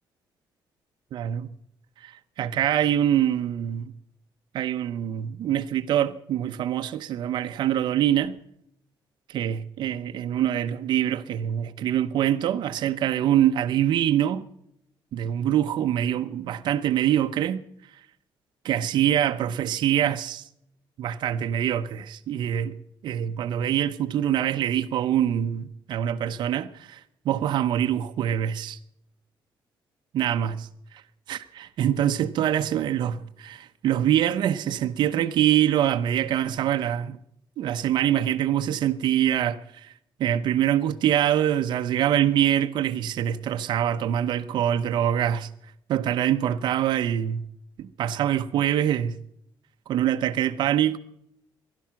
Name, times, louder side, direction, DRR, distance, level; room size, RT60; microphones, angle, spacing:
voice 1, 1.1-1.5 2.0-2.1 2.4-3.9 4.5-8.3 9.3-14.5 15.1-17.6 18.6-20.4 21.0-22.7 23.0-28.8 30.1-30.6 31.3-37.2 37.6-39.9 40.2-45.5 45.9-47.5 47.8-49.2 49.9-51.0, right 11 dB, 60° right, 0.8 m, -24 dB
20.0 x 11.5 x 5.9 m
cardioid pair, 175°, 8 cm